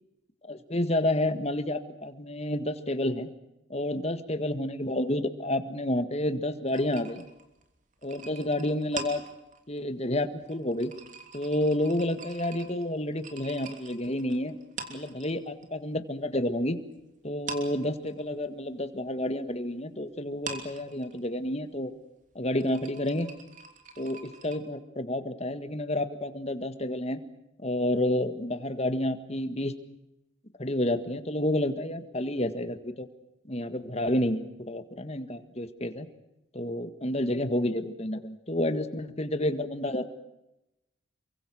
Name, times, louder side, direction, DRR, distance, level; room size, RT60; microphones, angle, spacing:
voice 1, 0.4-3.3 3.7-7.2 8.0-9.2 9.7-10.9 11.3-14.6 14.9-16.8 17.2-22.0 22.4-23.3 24.0-27.2 27.6-29.7 30.6-33.1 33.5-36.1 36.5-40.1, left 1 dB, 30° left, 10 dB, 1.8 m, -30 dB
sound 1, 6.7-15.7 16.0-17.0 17.3-24.6, right 4 dB, 40° right, 3.2 m, -44 dB
29.0 x 24.0 x 6.3 m, 0.90 s
head